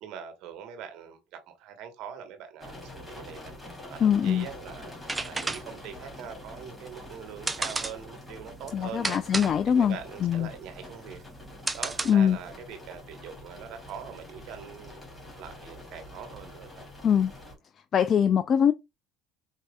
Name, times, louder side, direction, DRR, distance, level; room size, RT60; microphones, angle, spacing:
voice 1, 0.0-9.2 9.7-11.2 11.7-15.0 15.4-16.7, right 8 dB, 65° right, 1.2 m, -43 dB
sound 1, 2.6-17.6, left 1 dB, 5° left, 2.6 m, -46 dB
voice 2, 4.0-4.5 8.7-10.5 12.1-12.4 17.0-17.3 17.9-18.7, left 8 dB, 45° left, 0.3 m, -23 dB
sound 2, 4.9-12.5, right 3 dB, 15° right, 0.5 m, -34 dB
5.2 x 2.7 x 2.3 m
supercardioid pair, 80°, 0 cm